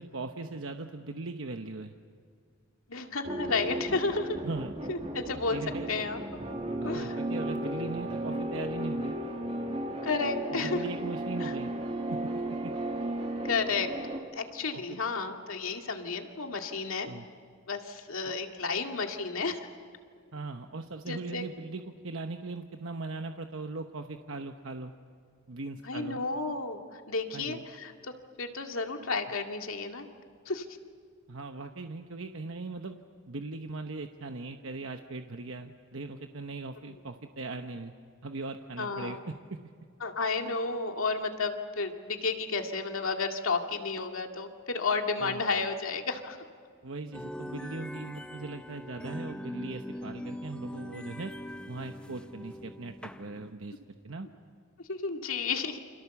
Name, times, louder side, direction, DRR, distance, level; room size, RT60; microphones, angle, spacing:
voice 1, 0.0-1.9 4.4-4.7 5.5-5.9 6.9-9.1 10.5-11.7 12.1-12.7 14.7-15.0 17.1-17.3 18.2-18.3 20.3-24.9 25.5-26.2 27.3-27.6 31.3-33.0 33.3-37.9 38.2-39.6 45.2-45.4 46.8-51.3 51.7-54.3, right 3 dB, 70° right, 5 dB, 1.0 m, -39 dB
voice 2, 2.9-4.4 4.9-5.6 5.9-6.2 6.8-7.2 10.0-10.8 11.4-11.5 13.4-13.9 14.3-17.1 17.7-19.7 21.1-21.4 25.8-28.1 28.4-30.1 30.5-30.7 38.8-39.2 40.0-46.4 54.9-55.8, left 4 dB, 75° left, 4 dB, 2.1 m, -32 dB
sound 1, 3.2-14.2, right 1 dB, 30° right, 1.9 m, -35 dB
sound 2, 47.1-53.5, equal, 5° left, 0.6 m, -41 dB
29.0 x 27.0 x 7.1 m, 2.2 s
head